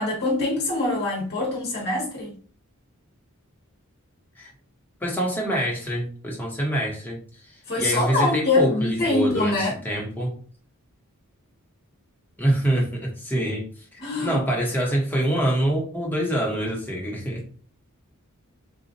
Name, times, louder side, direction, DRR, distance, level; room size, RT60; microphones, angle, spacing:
voice 1, 0.0-2.3 7.7-9.8 14.0-14.4, left 2 dB, 50° left, 1.0 m, -24 dB
voice 2, 5.0-7.2 7.8-9.6 9.8-10.4 12.4-13.7 14.2-17.4, right 1 dB, 10° left, 1.0 m, -25 dB
3.9 x 2.3 x 2.6 m
head